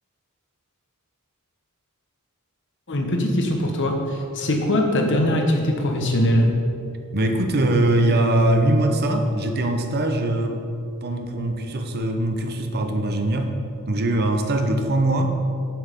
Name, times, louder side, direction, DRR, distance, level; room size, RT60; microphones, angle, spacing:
voice 1, 2.9-6.5, left 1 dB, 55° left, 2 dB, 1.2 m, -21 dB
voice 2, 7.1-10.6 11.0-13.5 13.9-15.4, right 1 dB, 45° right, 5 dB, 0.8 m, -21 dB
7.8 x 7.2 x 5.3 m, 2.5 s
head